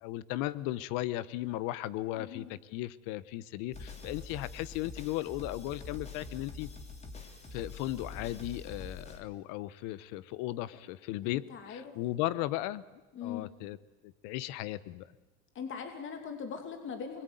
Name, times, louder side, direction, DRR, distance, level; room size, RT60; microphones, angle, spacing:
voice 1, 0.0-6.7 7.5-12.8 13.2-13.8 14.0-15.1, left 16 dB, 75° left, 17 dB, 1.1 m, -36 dB
voice 2, 2.1-2.5 11.2-11.9 13.1-13.5 15.5-17.2, left 7 dB, 35° left, 5 dB, 2.7 m, -41 dB
sound 1, 3.7-9.2, left 3 dB, 20° left, 3.3 m, -45 dB
27.5 x 21.5 x 9.4 m, 1.1 s
cardioid pair, 145°, 33 cm